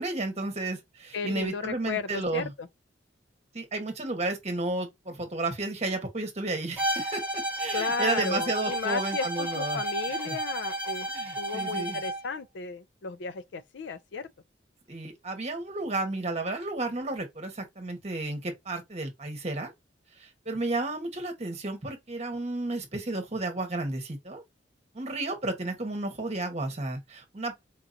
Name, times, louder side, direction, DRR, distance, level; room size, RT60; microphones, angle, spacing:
voice 1, 0.0-2.5 3.5-9.8 10.3-10.4 11.1-12.0 14.9-19.7 20.2-24.4 24.9-27.6, right 2 dB, 35° right, 1.1 m, -32 dB
voice 2, 1.1-2.7 7.7-11.1 11.4-14.3, left 4 dB, 65° left, 0.4 m, -34 dB
Bowed string instrument, 6.8-12.2, right 1 dB, 10° right, 1.3 m, -32 dB
4.6 x 2.7 x 2.5 m
head